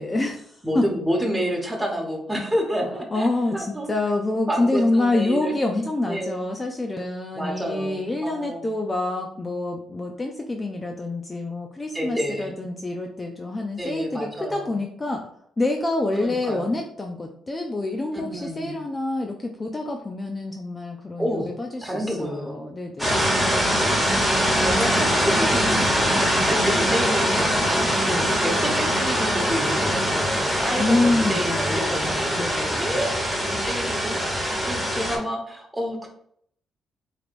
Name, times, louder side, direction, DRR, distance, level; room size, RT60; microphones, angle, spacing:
voice 1, 0.0-0.8 3.1-15.2 15.6-23.5 28.1-28.3 30.8-33.1, left 2 dB, 25° left, 2 dB, 0.5 m, -27 dB
voice 2, 0.6-3.9 4.5-5.6 6.0-6.4 7.3-8.7 11.9-12.5 13.8-14.8 16.2-16.7 18.1-18.8 21.2-21.5 21.8-22.6 23.3-24.3 24.6-33.1 33.4-36.1, equal, 10° right, 1 dB, 1.2 m, -29 dB
sound 1, 23.0-35.2, equal, 5° left, 1.4 m, -22 dB
4.9 x 3.1 x 2.5 m, 0.66 s
cardioid pair, 90°, 0 cm